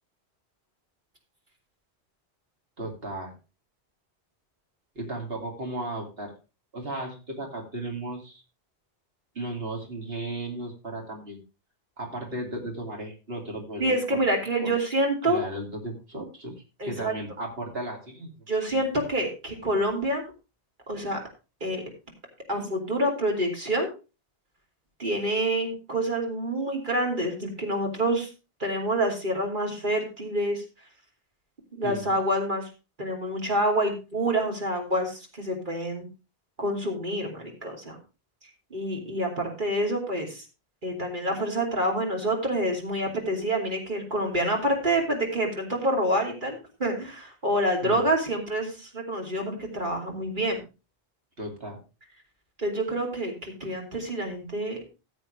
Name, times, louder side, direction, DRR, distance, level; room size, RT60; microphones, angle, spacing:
voice 1, 2.8-3.3 5.0-6.3 6.7-8.4 9.3-11.4 12.0-14.2 14.6-14.7 15.2-16.5 16.8-18.3 18.7-18.8 31.8-32.2 47.8-48.1 51.4-51.8, right 1 dB, 60° right, 1 dB, 2.8 m, -35 dB
voice 2, 13.8-15.4 16.8-17.1 18.5-20.2 20.9-21.2 21.6-21.8 22.5-23.9 25.0-28.3 28.6-30.6 31.7-32.6 33.0-36.1 36.6-38.0 38.7-40.4 40.8-50.6 52.6-54.8, right 1 dB, 45° right, 1 dB, 3.1 m, -27 dB
15.0 x 7.7 x 3.2 m, 0.30 s
omnidirectional pair, 1.1 m